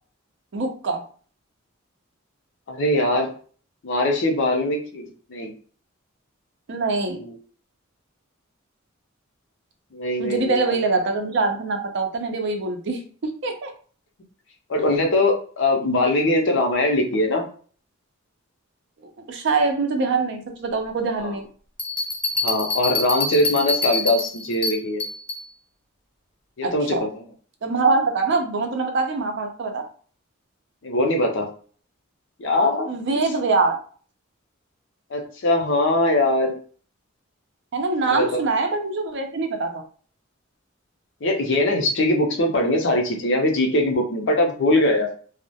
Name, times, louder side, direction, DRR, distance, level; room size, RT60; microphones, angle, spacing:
voice 1, 0.5-1.0 6.7-7.2 10.2-13.7 19.3-21.5 26.6-27.0 27.6-29.8 32.9-33.8 37.7-39.8, right 3 dB, 55° right, 5 dB, 0.5 m, -24 dB
voice 2, 2.7-3.3 3.8-5.5 7.1-7.3 9.9-10.7 14.7-17.4 21.2-21.4 22.4-25.0 26.6-27.2 30.8-31.5 32.4-32.9 35.1-36.6 38.1-38.4 41.2-45.1, left 1 dB, 60° left, 2 dB, 0.5 m, -21 dB
Bell, 21.8-25.5, left 3 dB, 5° left, 0.4 m, -26 dB
2.2 x 2.0 x 2.7 m, 0.43 s
head